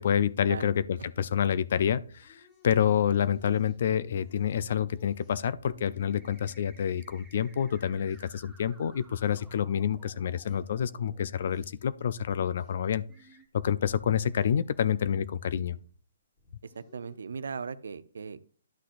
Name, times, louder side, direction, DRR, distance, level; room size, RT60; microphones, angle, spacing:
voice 1, 0.0-13.0 13.6-15.8, left 8 dB, 55° left, 0.4 m, -28 dB
sound 1, 1.7-7.4 7.8-12.0 12.3-13.0 13.5-15.5 15.7-16.1 16.4-17.8, left 3 dB, 25° left, 2.2 m, -60 dB
sound 2, 5.7-11.7 12.5-12.6 13.1-13.5, right 3 dB, ahead, 1.3 m, -58 dB
voice 2, 16.6-18.4, right 5 dB, 75° right, 0.6 m, -38 dB
11.5 x 5.9 x 2.5 m
hypercardioid pair, 140°, 0 cm